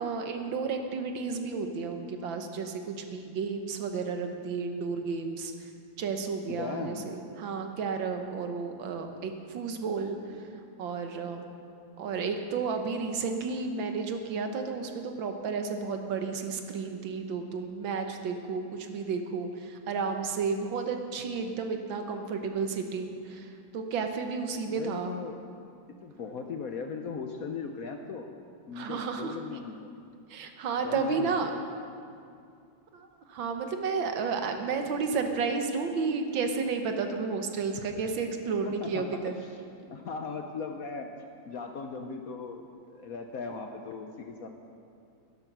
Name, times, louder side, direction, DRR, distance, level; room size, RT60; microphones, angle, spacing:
voice 1, 0.0-5.5 6.0-10.5 10.8-11.5 12.0-25.1 28.7-29.4 30.3-31.5 32.9-39.3, right 5 dB, 80° right, 5 dB, 1.8 m, -32 dB
voice 2, 6.5-7.1 24.7-25.4 26.0-28.3 28.7-29.9 30.8-31.3 38.6-39.3 39.9-41.1 41.5-42.6 42.9-44.5, left 5 dB, 60° left, 5 dB, 1.0 m, -38 dB
12.0 x 11.5 x 6.0 m, 2.4 s
omnidirectional pair, 2.1 m